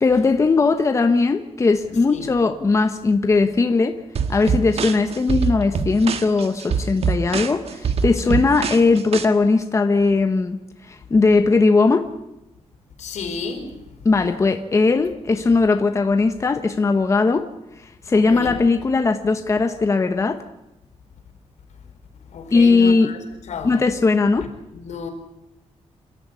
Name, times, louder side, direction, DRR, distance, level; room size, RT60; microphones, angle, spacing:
voice 1, 0.0-4.0 4.3-10.6 10.8-12.1 14.0-17.5 18.1-20.4 22.5-23.1 23.6-24.5, left 3 dB, 25° left, 1.2 m, -18 dB
sound 1, 4.1-9.2, right 5 dB, 60° right, 1.6 m, -24 dB
voice 2, 8.1-8.5 13.0-13.8 18.1-18.6 22.3-23.2 23.5-23.8 24.7-25.1, left 4 dB, 80° left, 4.7 m, -32 dB
28.0 x 13.0 x 9.8 m
wide cardioid pair, 170°, 12 cm